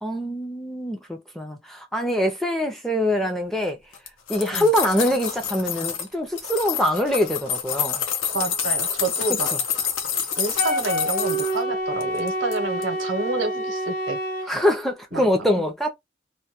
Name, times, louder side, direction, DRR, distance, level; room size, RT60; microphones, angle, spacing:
voice 1, 0.0-3.8 4.3-8.0 9.5-9.6 14.5-15.9, equal, ahead, 0.4 m, -24 dB
sound 1, 3.9-6.1 6.4-11.6 12.0-12.6 12.8-12.9, left 7 dB, 90° left, 0.6 m, -27 dB
voice 2, 8.3-9.5 10.4-14.2 15.1-15.6, right 3 dB, 85° right, 0.7 m, -29 dB
Wind instrument woodwind instrument, 10.6-14.5, equal, 45° left, 0.9 m, -27 dB
2.2 x 2.2 x 2.8 m
head